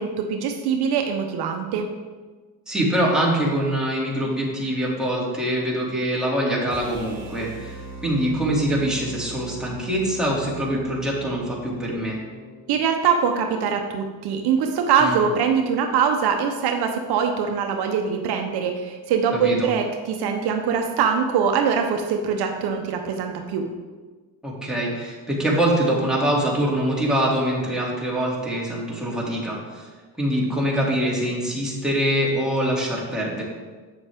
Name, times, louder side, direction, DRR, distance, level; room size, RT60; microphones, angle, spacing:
voice 1, 0.0-1.9 12.7-23.6, right 6 dB, 70° right, 4 dB, 0.9 m, -23 dB
voice 2, 2.7-12.2 15.0-15.2 19.3-19.7 24.4-29.9 30.2-33.4, right 1 dB, ahead, -5 dB, 2.5 m, -24 dB
sound 1, 6.7-12.8, right 2 dB, 30° right, 2.7 m, -40 dB
7.9 x 7.0 x 3.5 m, 1.3 s
cardioid pair, 100°, 40 cm